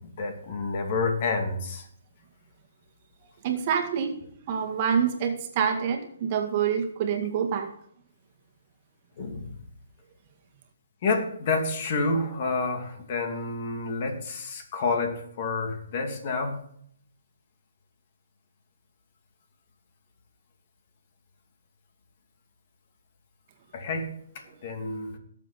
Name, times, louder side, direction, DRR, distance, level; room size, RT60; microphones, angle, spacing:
voice 1, 0.2-1.8 9.2-9.5 11.0-16.6 23.7-24.1 24.6-25.1, left 3 dB, 40° left, 4 dB, 2.6 m, -29 dB
voice 2, 3.4-4.2 4.5-7.7, right 7 dB, 35° right, 4 dB, 1.9 m, -26 dB
18.5 x 7.4 x 4.2 m, 0.65 s
hypercardioid pair, 160°, 0 cm